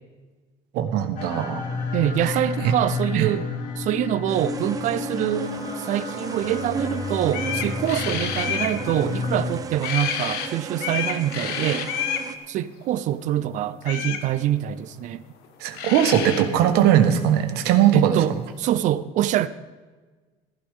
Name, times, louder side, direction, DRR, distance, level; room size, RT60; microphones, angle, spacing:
voice 1, 0.7-1.6 2.2-2.7 3.1-3.3 15.6-18.2, right 10 dB, 85° right, 1.4 m, -20 dB
sound 1, 1.2-9.5, left 4 dB, 55° left, 2.1 m, -31 dB
voice 2, 1.9-3.4 3.8-5.5 5.8-11.9 12.5-15.2 17.9-18.3 18.6-19.5, right 12 dB, 50° right, 0.6 m, -25 dB
sound 2, 4.3-12.4, right 5 dB, 20° right, 0.8 m, -35 dB
sound 3, 6.9-7.0 7.3-8.7 9.8-10.5 10.8-12.3 13.8-14.2 15.4-15.5 15.7-16.4, left 8 dB, 80° left, 1.5 m, -29 dB
15.0 x 11.5 x 3.6 m
cardioid pair, 175°, 16 cm